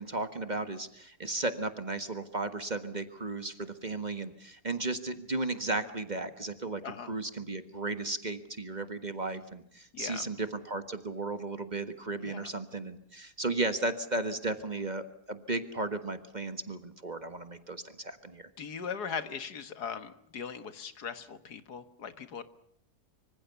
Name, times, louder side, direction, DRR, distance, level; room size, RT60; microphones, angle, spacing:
voice 1, 0.0-6.8 7.1-18.5, right 2 dB, 30° right, 10 dB, 1.5 m, -35 dB
voice 2, 9.9-10.3 12.2-12.5 18.6-22.4, left 6 dB, 80° left, 11 dB, 2.0 m, -39 dB
25.0 x 25.0 x 7.0 m, 0.70 s
omnidirectional pair, 1.7 m